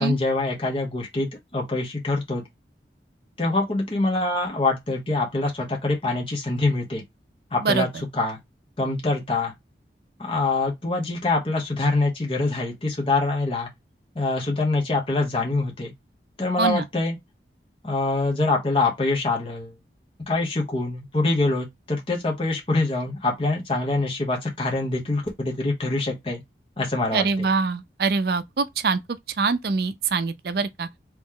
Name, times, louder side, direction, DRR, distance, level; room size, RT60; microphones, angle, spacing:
voice 1, 0.0-2.4 3.4-7.0 7.5-8.4 8.8-9.5 10.2-13.7 14.1-15.9 16.4-17.2 17.8-19.7 20.3-26.4 26.8-27.5, left 2 dB, 30° left, 1.1 m, -25 dB
voice 2, 27.1-29.0 29.4-30.9, right 4 dB, 60° right, 0.4 m, -24 dB
3.1 x 3.0 x 3.6 m
head